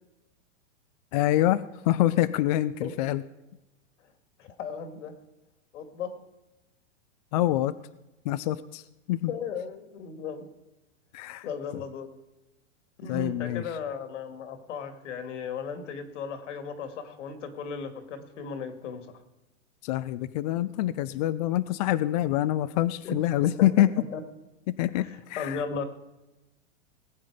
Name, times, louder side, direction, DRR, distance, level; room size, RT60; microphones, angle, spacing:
voice 1, 1.1-3.2 7.3-7.7 8.2-8.8 9.1-9.3 11.1-11.5 11.7-11.8 13.1-13.6 19.8-23.9 24.7-25.6, left 14 dB, 35° left, 15 dB, 0.4 m, -26 dB
voice 2, 4.4-5.1 5.7-6.1 9.3-10.5 11.4-12.1 13.0-19.1 23.0-23.2 23.6-24.2 25.0-25.8, left 6 dB, 70° left, 7 dB, 2.5 m, -36 dB
19.5 x 8.6 x 5.0 m, 0.99 s
hypercardioid pair, 145°, 37 cm